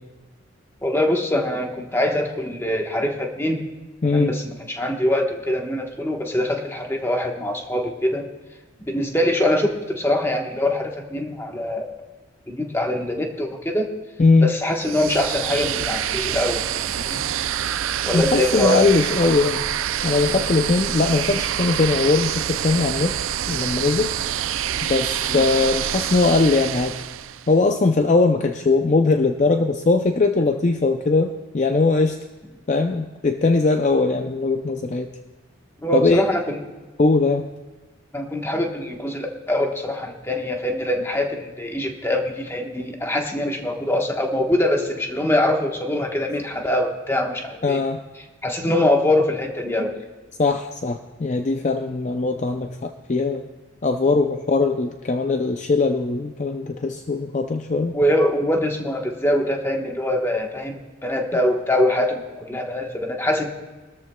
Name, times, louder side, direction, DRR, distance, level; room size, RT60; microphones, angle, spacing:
voice 1, 0.8-3.6 4.0-8.2 8.9-11.9 12.5-13.9 14.4-17.2 18.0-18.8 24.6-24.8 25.3-25.4 35.8-36.6 38.1-47.8 48.4-49.9 57.9-63.5, left 1 dB, 10° left, 2 dB, 1.2 m, -23 dB
voice 2, 4.0-4.3 14.2-14.5 18.1-19.7 20.0-23.2 23.5-24.1 24.8-27.0 27.5-32.2 32.7-35.1 35.9-36.2 37.0-37.5 47.6-48.0 50.4-53.4 53.8-57.9, left 3 dB, 35° left, 6 dB, 0.4 m, -20 dB
sound 1, 14.7-27.5, right 10 dB, 75° right, 0.4 m, -26 dB
21.5 x 13.5 x 2.3 m, 1.3 s
head